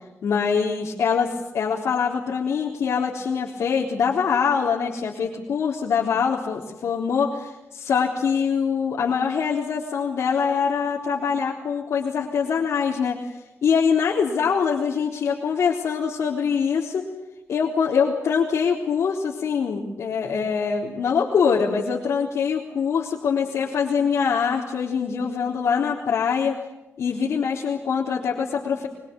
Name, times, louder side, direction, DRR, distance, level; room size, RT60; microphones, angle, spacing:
voice 1, 0.2-17.1 17.5-26.6 27.0-28.9, left 6 dB, 80° left, -4 dB, 3.8 m, -24 dB
24.0 x 24.0 x 8.4 m, 0.96 s
wide cardioid pair, 155°, 5 cm